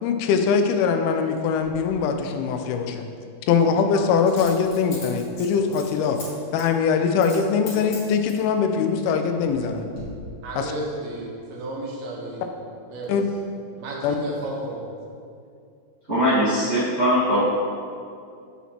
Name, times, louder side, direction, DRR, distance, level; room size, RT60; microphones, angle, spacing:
voice 1, 0.0-3.0 3.5-6.2 6.5-9.9 10.6-10.7 13.1-13.3 14.0-14.2, left 6 dB, 85° left, 6 dB, 2.5 m, -22 dB
Coin (dropping), 1.6-1.8 4.3-6.3 6.6-6.8 7.2-7.4 7.7-8.5 9.1-9.6 9.9-10.0, left 3 dB, 50° left, 1.8 m, -40 dB
voice 2, 10.4-12.4 12.9-13.1 13.7-14.8, right 1 dB, 70° right, -3 dB, 1.8 m, -33 dB
voice 3, 16.1-17.4, equal, 85° right, -14 dB, 0.6 m, -20 dB
7.2 x 7.1 x 2.9 m, 2.4 s
omnidirectional pair, 4.4 m